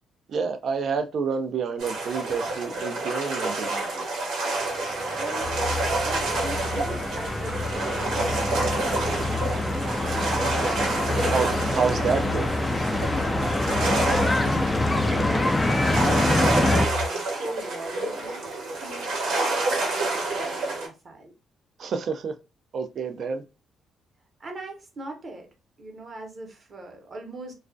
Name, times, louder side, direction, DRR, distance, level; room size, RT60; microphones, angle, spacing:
voice 1, 0.3-4.0 11.3-12.5 21.8-22.3 22.7-23.4, right 5 dB, 60° right, 0.4 m, -28 dB
sound 1, 1.8-20.9, right 2 dB, 85° right, 0.9 m, -28 dB
sound 2, 4.8-16.9, left 1 dB, 15° left, 0.3 m, -26 dB
voice 2, 5.2-9.8 13.8-21.3 24.4-25.5 25.8-27.5, right 2 dB, 40° right, 0.8 m, -40 dB
sound 3, 5.4-17.1, left 4 dB, 55° left, 0.7 m, -33 dB
2.3 x 2.1 x 2.5 m
cardioid pair, 90°, 0 cm